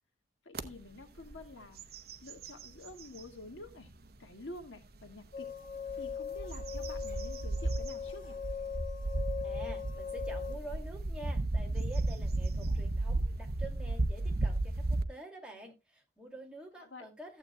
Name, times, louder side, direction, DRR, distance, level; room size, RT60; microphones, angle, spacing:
voice 1, 0.4-1.8 2.2-3.9 4.2-5.5 6.0-8.4 16.8-17.1, left 2 dB, 90° left, 5 dB, 1.9 m, -49 dB
sound 1, 0.5-0.7 1.2-1.4 1.8-3.3 3.9-4.0 5.7-15.0, right 2 dB, 55° right, 0.9 m, -34 dB
sound 2, 5.3-10.6, left 7 dB, 45° left, 0.7 m, -40 dB
voice 2, 9.4-17.4, right 1 dB, 5° right, 0 dB, 2.4 m, -48 dB
14.5 x 8.4 x 2.3 m, 0.22 s
head